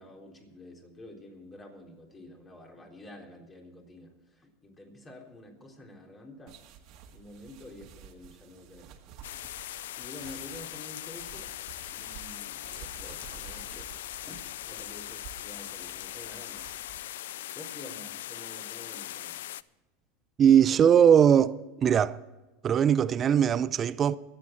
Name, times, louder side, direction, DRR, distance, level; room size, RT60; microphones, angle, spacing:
voice 1, 0.0-6.6 7.1-9.0 10.0-11.5 11.9-13.9 14.3-16.7 17.5-19.4, left 1 dB, 20° left, 3.8 m, -49 dB
sound 1, 6.5-17.0, right 8 dB, 55° right, 2.0 m, -51 dB
sound 2, 9.2-19.6, left 13 dB, 80° left, 0.4 m, -40 dB
voice 2, 20.4-22.2 22.6-24.2, right 8 dB, 30° right, 0.6 m, -20 dB
23.5 x 8.9 x 4.4 m
supercardioid pair, 115°, 0 cm